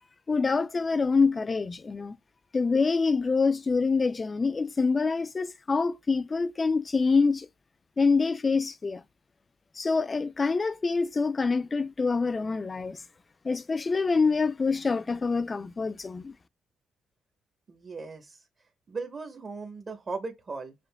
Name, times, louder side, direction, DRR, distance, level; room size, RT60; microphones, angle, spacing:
voice 1, 0.3-2.2 2.5-7.5 8.0-9.0 9.8-13.0 13.4-16.3, left 4 dB, 30° left, 0.4 m, -26 dB
voice 2, 17.7-18.4 18.9-20.7, right 4 dB, 40° right, 1.0 m, -37 dB
7.6 x 2.5 x 2.2 m
cardioid pair, 90°, 0 cm